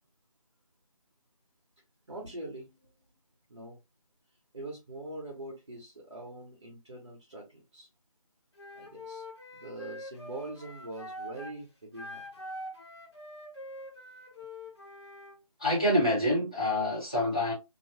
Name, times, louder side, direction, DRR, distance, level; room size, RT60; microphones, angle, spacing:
voice 1, 2.1-2.9 3.5-3.8 4.5-7.9 8.7-9.2 9.5-12.2, right 2 dB, 45° right, 1.1 m, -43 dB
Wind instrument woodwind instrument, 8.6-11.6 11.9-15.4, left 1 dB, 45° left, 0.9 m, -44 dB
voice 2, 15.6-17.5, left 1 dB, 10° left, 0.8 m, -26 dB
2.9 x 2.2 x 2.7 m
figure-of-eight pair, 175°, 19 cm